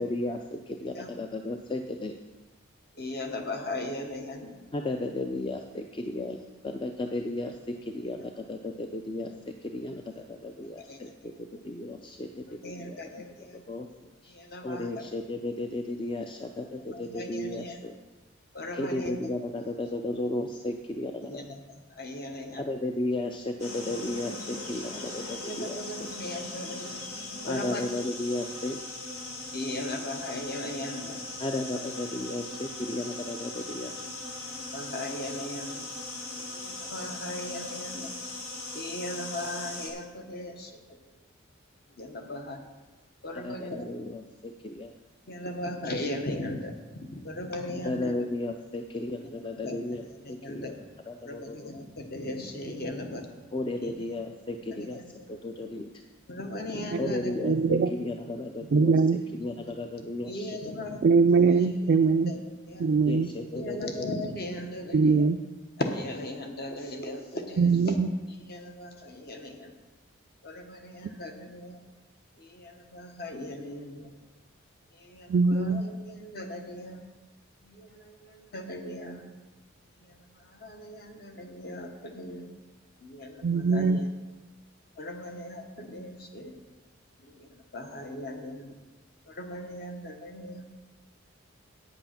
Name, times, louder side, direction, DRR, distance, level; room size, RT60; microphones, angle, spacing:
voice 1, 0.0-2.2 4.7-13.0 13.4-14.3 14.6-18.0 18.7-21.4 22.6-26.1 27.5-28.8 31.4-34.0 43.4-44.9 47.8-50.7 51.1-51.7 53.5-55.9 57.0-58.9 59.3-60.7 61.2-61.3 63.1-64.1, left 2 dB, 25° left, 4 dB, 0.4 m, -34 dB
voice 2, 2.9-4.6 8.2-8.3 10.8-11.4 12.5-13.6 14.3-15.0 16.9-17.8 18.5-19.2 21.2-21.6 21.9-22.7 25.5-27.0 27.4-27.9 29.5-31.2 34.4-35.9 36.5-38.1 38.7-41.0 41.9-42.6 43.2-43.9 45.2-48.1 49.2-50.7 51.2-53.5 53.8-53.9 54.7-55.1 55.6-55.7 56.3-57.4 59.6-59.7 60.3-61.0 61.5-61.6 62.3-62.4 62.7-63.2 63.5-65.3 65.8-67.9 68.4-69.7 70.4-71.8 72.4-74.1 74.9-77.0 77.6-79.2 80.0-82.5 83.0-84.1 85.0-86.6 87.2-88.7 89.3-90.7, left 1 dB, 50° left, 4 dB, 1.2 m, -38 dB
sound 1, 23.6-39.9, left 2 dB, 85° left, 2.0 m, -39 dB
voice 3, 57.4-57.9 58.7-59.2 61.0-62.3 62.8-63.3 64.9-65.4 67.6-68.1 75.3-75.8 83.4-84.0, right 4 dB, 50° right, 4 dB, 0.3 m, -22 dB
9.0 x 7.9 x 5.8 m, 1.2 s
head